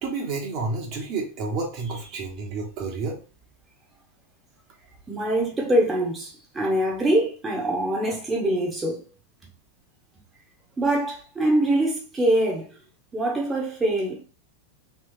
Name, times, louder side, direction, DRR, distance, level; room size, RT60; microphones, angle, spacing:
voice 1, 0.0-3.2, right 3 dB, 40° right, 1.2 m, -30 dB
voice 2, 5.1-9.0 10.8-12.6 13.1-14.2, right 1 dB, 15° right, 1.1 m, -24 dB
3.6 x 3.4 x 3.2 m
figure-of-eight pair, 90°, 0 cm